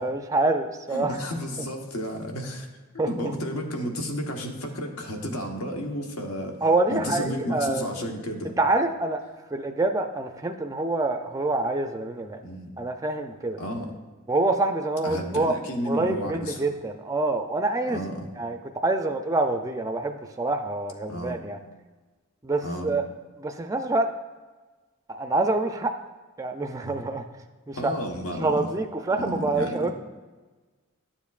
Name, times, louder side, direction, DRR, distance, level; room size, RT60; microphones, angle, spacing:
voice 1, 0.0-1.2 3.0-3.3 6.6-7.8 8.6-9.2 9.5-12.4 12.8-13.6 14.3-15.6 15.9-18.0 18.4-18.6 18.8-21.6 22.4-23.0 23.4-24.1 25.1-25.9 26.4-27.2 27.7-27.9 28.4-29.9, right 2 dB, 15° right, 5 dB, 0.3 m, -26 dB
voice 2, 0.9-2.7 2.9-6.6 6.9-8.6 12.4-12.7 13.6-13.9 15.0-16.6 17.9-18.3 21.1-21.4 22.6-22.9 26.8-27.0 27.8-28.7 29.2-29.9, equal, 85° left, 3 dB, 1.1 m, -32 dB
11.5 x 7.1 x 2.4 m, 1.3 s
head